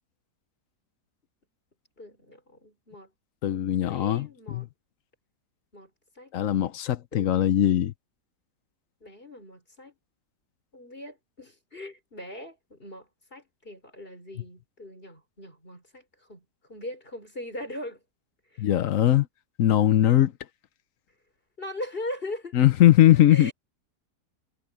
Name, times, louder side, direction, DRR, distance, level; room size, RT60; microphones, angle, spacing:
voice 1, 2.0-3.1 3.8-4.7 5.7-5.9 6.1-6.3 7.1-7.4 9.0-9.9 10.7-18.0 18.5-18.7 21.6-22.6 23.3-23.5, left 1 dB, 30° left, 5.1 m, -40 dB
voice 2, 3.4-4.7 6.3-7.9 18.6-19.3 19.6-20.3 22.5-23.5, left 12 dB, 60° left, 1.0 m, -20 dB
omnidirectional pair, 1.8 m